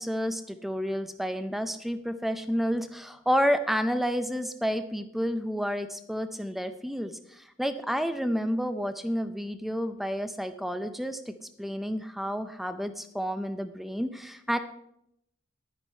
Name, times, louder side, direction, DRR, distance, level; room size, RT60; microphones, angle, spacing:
voice 1, 0.0-14.6, equal, ahead, 10 dB, 0.5 m, -30 dB
11.0 x 9.9 x 4.4 m, 0.78 s
head